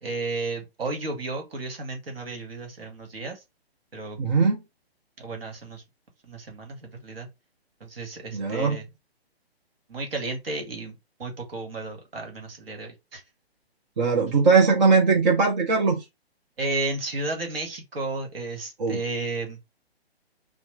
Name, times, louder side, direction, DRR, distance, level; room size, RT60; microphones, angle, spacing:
voice 1, 0.0-3.4 3.9-4.2 5.2-5.8 6.2-7.3 7.8-8.9 9.9-13.2 16.6-19.6, right 3 dB, 65° right, 1.4 m, -33 dB
voice 2, 4.2-4.6 8.3-8.8 14.0-16.0 18.8-19.0, right 4 dB, 45° right, 0.8 m, -20 dB
3.1 x 2.0 x 3.1 m
figure-of-eight pair, 130°, 32 cm